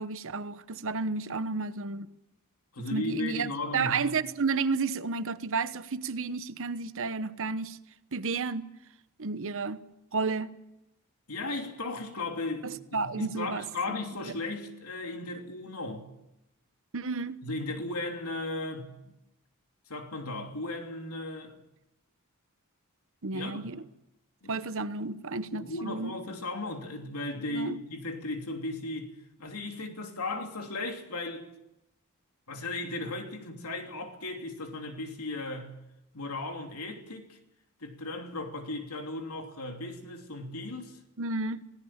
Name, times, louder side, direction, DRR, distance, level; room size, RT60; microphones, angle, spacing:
voice 1, 0.0-2.1 2.9-7.8 8.1-8.7 9.2-9.8 10.1-10.5 12.6-14.0 16.9-17.4 23.2-23.8 24.5-26.1 27.5-27.8 41.2-41.6, right 4 dB, 65° right, 1.1 m, -32 dB
voice 2, 2.7-4.1 11.3-16.1 17.4-19.1 19.9-21.6 23.3-23.7 24.4-24.6 25.5-29.1 29.4-31.5 32.5-35.8 36.1-37.4 37.8-41.0, left 2 dB, 80° left, 3.0 m, -36 dB
27.0 x 17.5 x 7.4 m
head